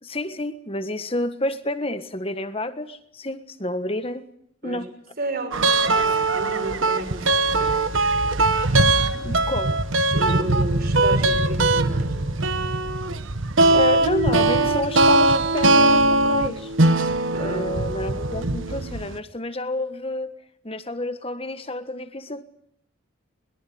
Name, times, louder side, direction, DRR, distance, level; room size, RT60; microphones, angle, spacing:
voice 1, 0.0-4.3 4.6-4.9 9.1-9.8 13.7-16.7 17.4-20.3 20.6-22.4, left 1 dB, 30° left, 1.4 m, -29 dB
voice 2, 5.2-8.0 10.1-12.3 17.3-17.7, right 1 dB, 50° right, 6.1 m, -33 dB
sound 1, 5.5-19.2, right 2 dB, 75° right, 1.5 m, -20 dB
22.5 x 22.0 x 8.7 m
head